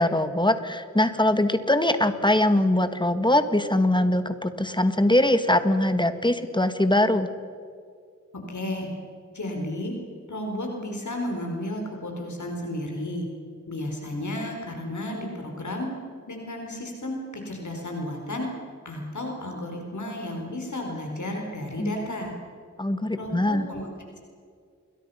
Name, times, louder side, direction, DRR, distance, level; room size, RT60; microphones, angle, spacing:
voice 1, 0.0-7.3 21.8-21.9 22.8-23.7, left 1 dB, 15° left, 10 dB, 1.7 m, -22 dB
voice 2, 8.5-8.9 9.3-9.9 10.3-13.3 13.7-15.9 16.3-18.5 18.8-22.3 23.1-23.9, left 1 dB, 80° left, 1 dB, 4.3 m, -32 dB
29.0 x 22.5 x 5.7 m, 2.2 s
wide cardioid pair, 70°, 29 cm